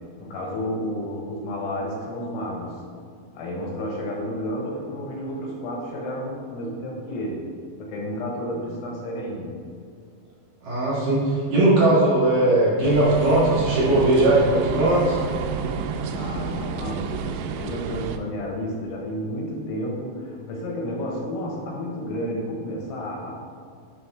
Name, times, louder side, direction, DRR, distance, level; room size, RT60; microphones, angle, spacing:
voice 1, 0.2-2.8 3.3-7.5 7.8-9.6 16.1-23.3, equal, 90° left, -2 dB, 3.8 m, -31 dB
voice 2, 10.6-15.2, right 1 dB, 55° right, -9 dB, 3.3 m, -19 dB
sound 1, 12.8-18.2, right 6 dB, 85° right, 2.9 m, -30 dB
10.5 x 5.9 x 3.5 m, 2.3 s
omnidirectional pair, 5.3 m